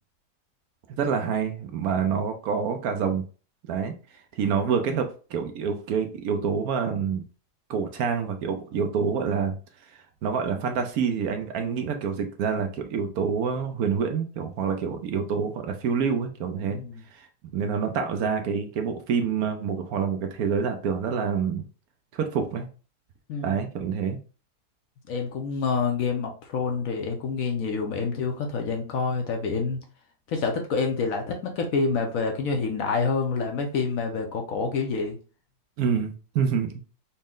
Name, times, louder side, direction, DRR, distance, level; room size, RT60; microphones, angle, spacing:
voice 1, 0.9-3.2 3.7-3.9 4.3-7.2 7.7-9.6 10.2-16.8 17.1-17.3 17.5-21.6 22.1-22.7 23.4-24.2 35.8-36.7, right 6 dB, 70° right, 6 dB, 1.0 m, -27 dB
voice 2, 16.7-17.0 23.3-23.6 25.1-29.8 30.3-35.2, left 4 dB, 65° left, 3 dB, 1.0 m, -27 dB
4.2 x 2.1 x 3.6 m, 0.36 s
omnidirectional pair, 1.7 m